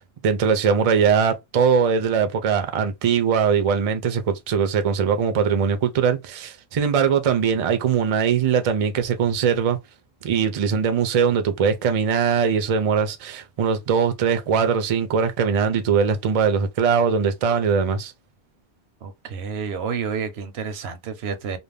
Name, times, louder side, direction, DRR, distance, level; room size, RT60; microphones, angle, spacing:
voice 1, 0.0-9.8 10.2-18.1, right 6 dB, 50° right, 0.4 m, -21 dB
voice 2, 19.0-21.6, right 6 dB, 85° right, 0.9 m, -30 dB
2.5 x 2.1 x 3.3 m
omnidirectional pair, 1.0 m